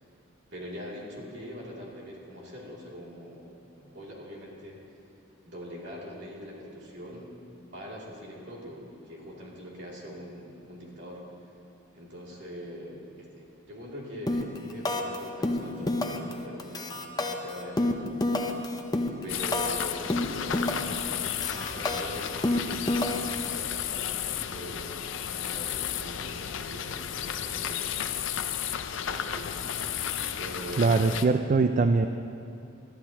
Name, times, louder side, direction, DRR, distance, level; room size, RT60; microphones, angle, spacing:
voice 1, 0.5-3.5 3.8-4.8 5.4-7.3 7.7-11.2 11.9-18.0 19.2-23.1 23.4-25.0 25.3-28.0 28.9-29.7 30.4-31.1, equal, 60° right, -4 dB, 2.8 m, -43 dB
sound 1, 14.3-14.6 14.9-15.2 15.4-16.3 16.6-19.8 20.1-21.0 21.3-23.5, left 2 dB, 20° left, 0.7 m, -28 dB
sound 2, 19.3-31.2, left 9 dB, 65° left, 0.5 m, -33 dB
voice 2, 30.8-32.1, right 4 dB, 40° right, 7 dB, 0.4 m, -22 dB
20.5 x 13.0 x 3.0 m, 2.5 s
head